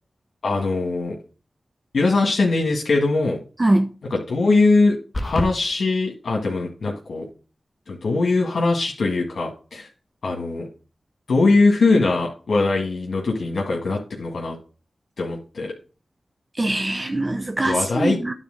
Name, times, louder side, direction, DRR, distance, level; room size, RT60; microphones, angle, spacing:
voice 1, 0.4-1.1 1.9-3.4 4.0-5.0 5.2-7.3 7.9-9.9 10.2-10.7 11.3-14.5 15.2-15.7 17.6-18.2, left 3 dB, 75° left, 1.7 m, -21 dB
sound 1, 5.1-5.5, left 1 dB, 35° left, 1.4 m, -25 dB
voice 2, 16.6-18.3, right 1 dB, 35° right, 0.9 m, -22 dB
10.0 x 4.0 x 6.5 m
cardioid pair, 40°, 0 cm